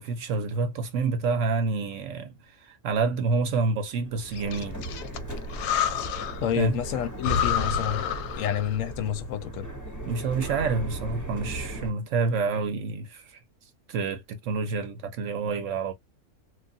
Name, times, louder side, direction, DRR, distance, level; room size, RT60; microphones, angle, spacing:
voice 1, 0.0-2.3 2.6-4.8 6.6-6.7 10.1-13.4 13.9-15.9, right 4 dB, 65° right, 0.8 m, -28 dB
sound 1, 4.1-11.9, right 2 dB, 20° left, 0.6 m, -38 dB
Breathing, 4.3-6.5 6.8-6.9 7.2-8.9, left 8 dB, 90° left, 1.1 m, -29 dB
voice 2, 6.4-8.1 8.3-9.7, left 9 dB, 70° left, 0.9 m, -29 dB
3.1 x 2.3 x 2.6 m
omnidirectional pair, 1.6 m